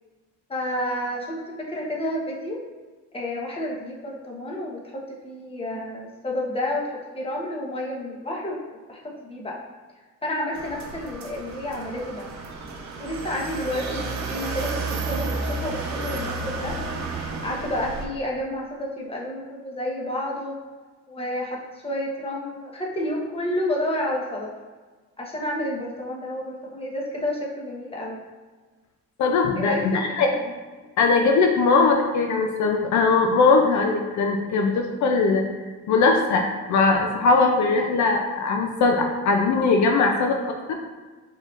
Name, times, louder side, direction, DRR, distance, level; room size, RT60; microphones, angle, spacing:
voice 1, 0.5-2.6 3.1-9.6 10.2-12.3 13.0-16.8 17.4-20.6 21.1-24.5 25.2-28.2 29.6-30.5, left 1 dB, 20° left, -2 dB, 1.1 m, -30 dB
sound 1, 10.5-18.1, right 3 dB, 65° right, 0.8 m, -31 dB
voice 2, 29.2-30.3 31.0-35.4 35.9-36.4 36.7-40.7, left 4 dB, 70° left, 3 dB, 0.6 m, -20 dB
5.0 x 4.0 x 2.5 m, 1.4 s
cardioid pair, 90°, 30 cm